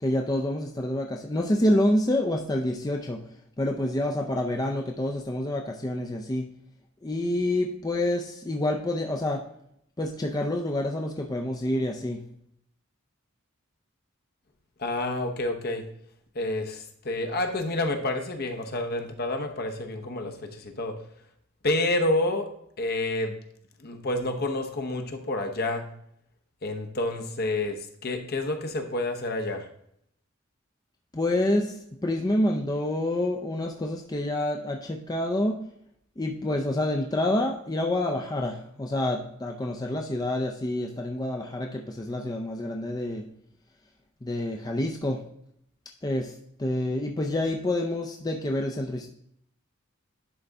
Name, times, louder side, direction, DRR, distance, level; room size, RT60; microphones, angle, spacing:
voice 1, 0.0-3.2 3.6-6.5 7.0-9.4 10.0-12.2 31.1-31.8 32.0-35.7 36.2-43.2 44.2-45.2 46.0-49.1, left 1 dB, 20° left, 1 dB, 0.5 m, -27 dB
voice 2, 14.8-15.8 16.3-21.0 21.6-22.5 22.8-23.4 23.8-25.8 26.6-29.7, left 2 dB, 50° left, 4 dB, 0.9 m, -29 dB
11.0 x 3.9 x 3.5 m, 0.71 s
head